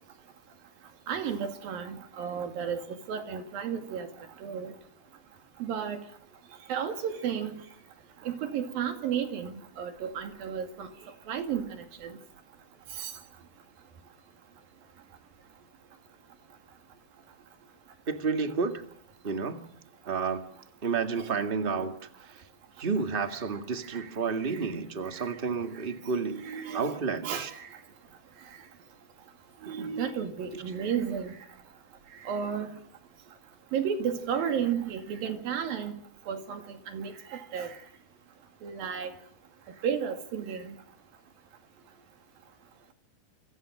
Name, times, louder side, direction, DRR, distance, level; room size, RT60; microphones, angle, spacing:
voice 1, 1.1-4.1 4.4-4.8 5.6-6.0 6.7-7.6 8.2-12.2 12.9-13.1 21.2-21.3 23.9-24.2 24.5-24.7 25.1-25.4 26.3-27.0 27.2-27.8 29.6-31.4 32.2-32.7 33.7-36.0 36.3-37.8 38.6-39.1 39.8-40.7, right 7 dB, 75° right, 4.2 m, -33 dB
voice 2, 18.1-18.8 19.2-19.6 20.0-20.4 20.8-21.9 22.2-22.4 22.8-26.4 26.7-27.5 30.5-30.6, right 5 dB, 25° right, 1.3 m, -30 dB
28.0 x 24.5 x 6.5 m
omnidirectional pair, 4.2 m